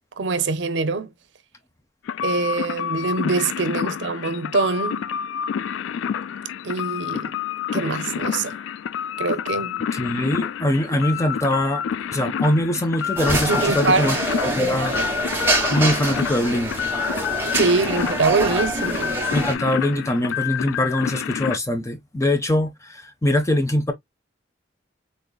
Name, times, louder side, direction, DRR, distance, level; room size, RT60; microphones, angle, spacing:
voice 1, 0.2-1.1 2.2-5.0 6.6-7.4 7.7-8.6 9.2-9.8 13.5-14.1 14.6-15.1 17.5-19.2, right 4 dB, 70° right, 0.6 m, -24 dB
sound 1, 2.1-21.6, left 8 dB, 90° left, 0.3 m, -28 dB
voice 2, 9.9-11.8 12.1-14.2 14.4-14.9 15.7-16.7 19.3-23.9, left 1 dB, 15° left, 0.6 m, -22 dB
sound 2, 13.2-19.5, right 1 dB, 10° right, 1.1 m, -25 dB
3.8 x 3.7 x 2.2 m
head